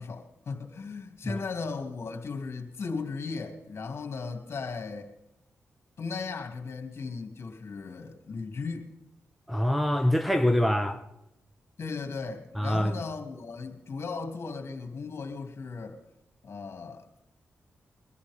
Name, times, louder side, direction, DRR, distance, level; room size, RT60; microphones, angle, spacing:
voice 1, 0.0-5.1 6.0-8.9 11.8-16.0 16.4-17.0, left 4 dB, 60° left, 2.8 m, -36 dB
voice 2, 9.5-11.0 12.6-13.0, left 1 dB, ahead, 1.4 m, -25 dB
22.5 x 14.0 x 3.7 m
cardioid pair, 65°, 5 cm